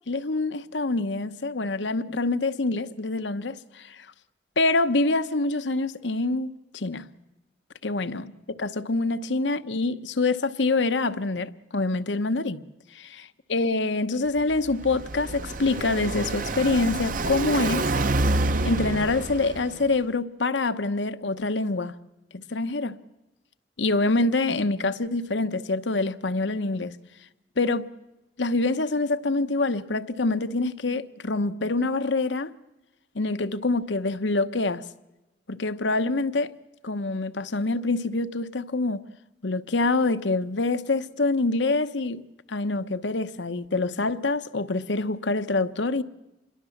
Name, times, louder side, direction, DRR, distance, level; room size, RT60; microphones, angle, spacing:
voice 1, 0.1-4.1 4.6-7.1 7.8-8.3 8.6-12.6 12.9-17.9 18.6-21.9 22.3-23.0 23.8-26.9 27.6-27.9 28.4-32.5 33.1-34.8 35.5-36.5 36.8-39.0 39.4-42.2 42.5-46.0, left 3 dB, 85° left, 1.0 m, -26 dB
Car passing by, 14.4-19.9, right 2 dB, 50° right, 0.8 m, -28 dB
27.0 x 21.5 x 7.2 m
head